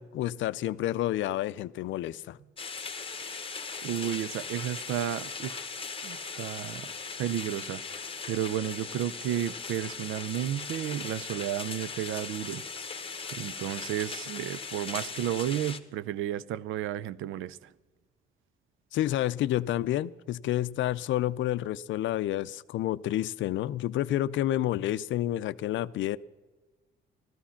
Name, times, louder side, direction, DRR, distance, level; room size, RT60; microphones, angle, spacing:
voice 1, 0.0-2.4 18.9-26.2, left 13 dB, 75° left, 0.5 m, -29 dB
sound 1, 2.6-15.8, left 5 dB, 25° left, 1.0 m, -39 dB
voice 2, 3.8-5.7 6.0-6.9 7.2-7.8 8.3-12.6 13.3-17.6, right 11 dB, 85° right, 0.5 m, -32 dB
14.0 x 13.0 x 5.7 m
cardioid pair, 90°, 20 cm